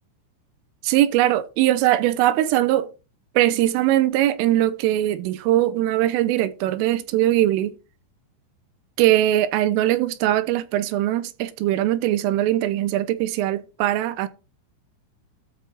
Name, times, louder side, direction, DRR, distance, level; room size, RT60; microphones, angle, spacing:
voice 1, 0.8-2.9 3.4-7.8 9.0-14.3, right 13 dB, 85° right, 3.4 m, -21 dB
13.5 x 6.1 x 4.4 m
omnidirectional pair, 5.8 m